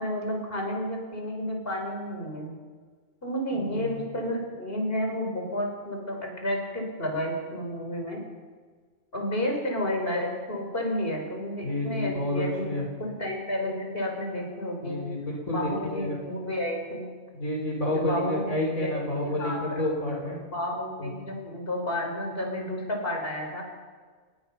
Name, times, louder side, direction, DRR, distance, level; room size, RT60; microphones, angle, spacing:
voice 1, 0.0-2.5 3.2-8.2 9.1-15.1 15.5-17.1 17.9-18.5 18.8-19.8 20.5-23.6, left 1 dB, 45° left, 1 dB, 5.2 m, -31 dB
voice 2, 3.5-4.0 11.6-12.9 14.8-16.2 17.3-20.4 21.0-21.1, left 1 dB, 85° left, 0 dB, 4.9 m, -30 dB
30.0 x 20.0 x 5.6 m, 1.5 s
omnidirectional pair, 1.4 m